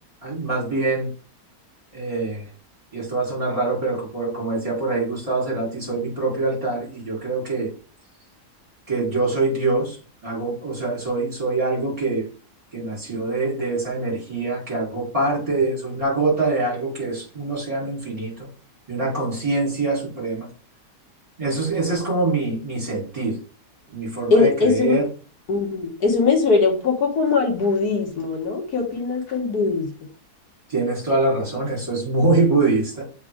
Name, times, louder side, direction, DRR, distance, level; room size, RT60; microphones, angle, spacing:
voice 1, 0.2-1.1 1.9-2.4 2.9-7.7 8.9-10.0 10.2-12.3 12.7-18.5 18.9-20.5 21.4-23.4 23.9-25.1 30.7-33.0, right 3 dB, 20° right, 3.7 m, -24 dB
voice 2, 24.3-25.0 25.5-29.9, left 4 dB, 70° left, 2.1 m, -20 dB
7.4 x 4.3 x 3.6 m
omnidirectional pair, 1.7 m